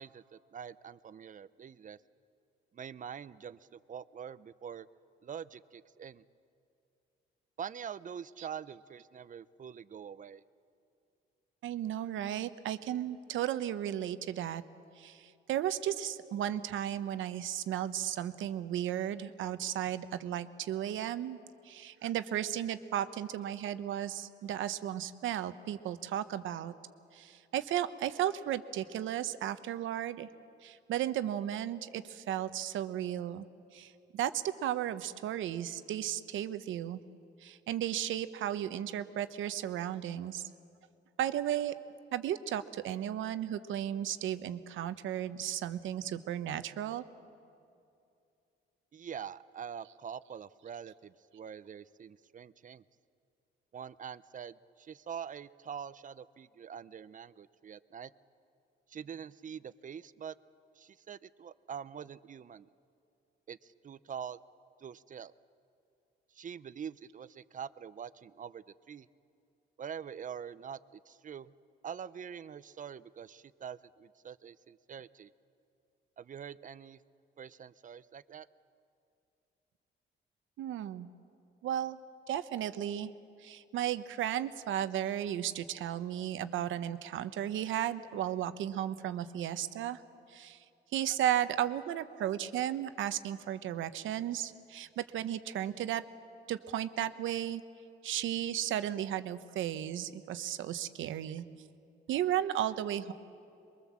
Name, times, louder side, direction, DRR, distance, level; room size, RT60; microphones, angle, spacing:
voice 1, 0.0-2.0 2.7-4.9 5.2-6.2 7.6-10.4 48.9-52.8 53.7-58.1 58.9-60.4 60.8-62.7 63.5-64.4 64.8-65.3 66.3-69.1 69.8-70.8 71.1-71.5 71.8-75.3 76.2-77.0 77.4-78.5, right 8 dB, 40° right, 16 dB, 0.6 m, -45 dB
voice 2, 11.6-14.6 15.0-21.4 21.6-26.7 27.1-30.3 30.6-33.5 33.7-37.0 37.4-40.5 41.2-41.7 42.1-47.0 80.6-81.1 81.6-83.1 83.4-90.0 90.3-90.6 90.9-96.0 96.5-97.6 98.0-101.4 102.1-103.1, right 11 dB, 80° right, 12 dB, 1.0 m, -34 dB
23.5 x 22.5 x 7.4 m, 2.6 s
cardioid pair, 90°, 20 cm